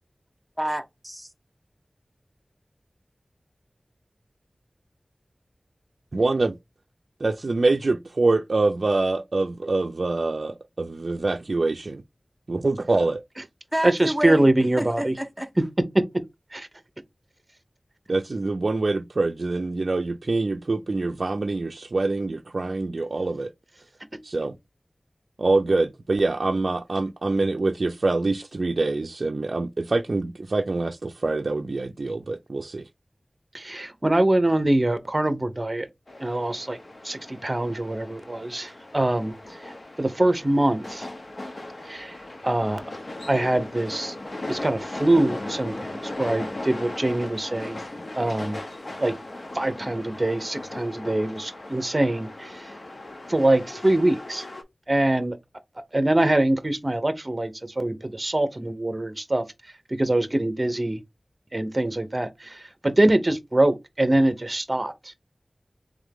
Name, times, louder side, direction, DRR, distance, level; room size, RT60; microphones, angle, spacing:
voice 1, 0.6-1.3 13.7-14.5 14.8-15.5, right 1 dB, 5° right, 1.0 m, -29 dB
voice 2, 6.1-6.5 7.2-12.0 12.5-13.2 18.1-23.5 24.2-24.5 25.4-32.8, right 3 dB, 70° right, 0.4 m, -25 dB
voice 3, 13.8-15.1 16.5-16.7 33.5-35.9 36.2-36.8 37.0-39.3 39.6-41.1 41.8-42.2 42.4-42.8 43.3-44.1 44.5-47.8 48.1-48.6 49.0-49.1 49.5-52.7 53.3-54.5 54.9-55.4 55.9-57.5 57.8-59.4 59.9-61.0 61.5-65.1, right 1 dB, 35° right, 0.9 m, -23 dB
sound 1, 36.1-54.6, left 2 dB, 55° left, 0.9 m, -38 dB
3.6 x 3.6 x 3.6 m
wide cardioid pair, 60°, 0 cm